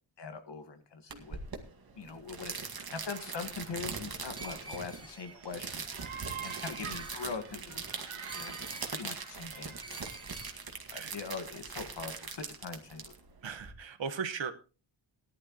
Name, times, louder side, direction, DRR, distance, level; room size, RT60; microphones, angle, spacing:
voice 1, 0.2-1.4 2.0-5.9 6.4-7.8 8.1-8.6 8.9-10.0 10.9-13.1, left 5 dB, 60° left, 8 dB, 1.8 m, -42 dB
sound 1, 1.1-13.7, right 5 dB, 50° right, 2.1 m, -42 dB
sound 2, 3.1-10.5, right 7 dB, 85° right, 2.5 m, -48 dB
Screech, 4.3-5.4 6.4-7.3 8.2-8.9 9.8-10.6, right 2 dB, 10° right, 1.0 m, -48 dB
voice 2, 13.4-14.5, right 6 dB, 65° right, 9 dB, 1.5 m, -37 dB
18.5 x 11.5 x 3.1 m, 0.33 s
wide cardioid pair, 150°, 48 cm